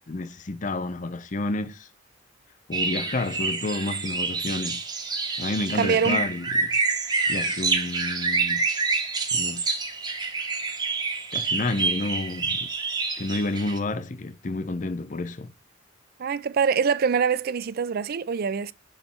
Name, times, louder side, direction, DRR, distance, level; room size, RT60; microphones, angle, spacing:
voice 1, 0.1-1.9 2.7-4.8 5.4-6.7 7.3-8.6 9.3-9.9 11.3-12.7 13.2-15.5, left 2 dB, 40° left, 0.6 m, -30 dB
sound 1, 2.7-13.8, right 4 dB, 20° right, 0.9 m, -27 dB
voice 2, 5.7-6.2 16.2-18.7, right 6 dB, 50° right, 0.4 m, -24 dB
7.1 x 3.2 x 5.8 m
head